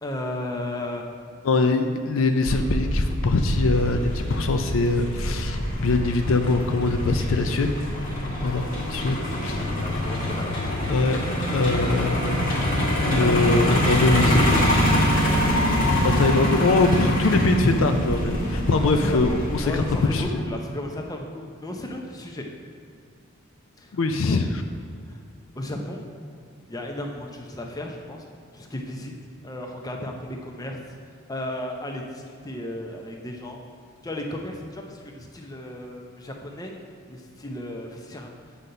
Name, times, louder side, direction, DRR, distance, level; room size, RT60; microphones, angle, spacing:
voice 1, 0.0-1.0 9.6-10.5 18.9-19.2 19.6-22.5 23.8-24.4 25.1-25.2 25.5-26.1 26.7-28.2 28.5-29.1 29.4-30.8 31.3-33.6 34.0-36.7 37.1-38.4, left 1 dB, 15° left, 2 dB, 0.6 m, -34 dB
voice 2, 1.4-7.8 8.4-9.7 10.9-12.4 13.0-14.4 16.0-19.7 20.0-20.3 23.9-24.4, left 3 dB, 65° left, 6 dB, 0.4 m, -23 dB
Truck, 2.5-20.2, equal, 40° left, 1.7 m, -24 dB
8.1 x 4.0 x 5.5 m, 2.2 s
head